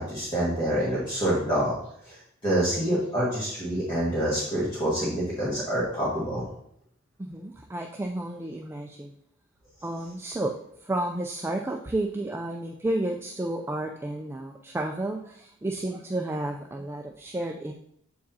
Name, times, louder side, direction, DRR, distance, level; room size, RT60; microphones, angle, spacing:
voice 1, 0.0-1.8 2.0-6.4, equal, 25° left, -8 dB, 1.7 m, -27 dB
voice 2, 7.2-9.1 9.8-10.5 10.8-17.7, right 1 dB, 10° right, 2 dB, 0.3 m, -31 dB
7.3 x 4.7 x 2.7 m, 0.69 s
head